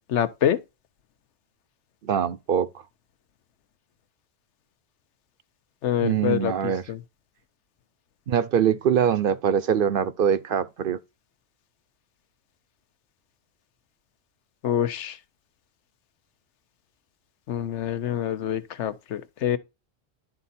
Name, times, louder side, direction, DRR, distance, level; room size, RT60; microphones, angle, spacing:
voice 1, 0.1-0.6 5.8-7.0 14.6-15.2 17.5-19.6, left 10 dB, 85° left, 1.1 m, -26 dB
voice 2, 2.0-2.7 6.0-6.8 8.3-11.0, right 8 dB, 60° right, 0.7 m, -23 dB
11.0 x 4.0 x 4.2 m
omnidirectional pair, 1.2 m